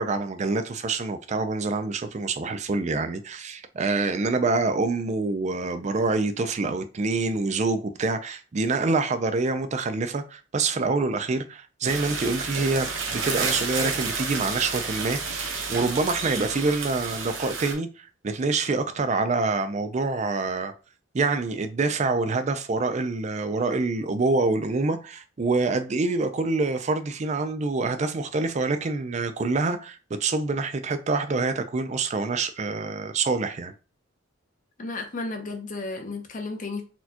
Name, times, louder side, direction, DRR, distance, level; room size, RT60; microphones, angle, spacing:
voice 1, 0.0-20.7 21.1-33.7, right 3 dB, 35° right, 0.4 m, -26 dB
sound 1, 11.8-17.7, right 4 dB, 85° right, 0.9 m, -30 dB
voice 2, 34.8-36.8, left 3 dB, 40° left, 0.7 m, -33 dB
4.3 x 2.3 x 2.8 m
head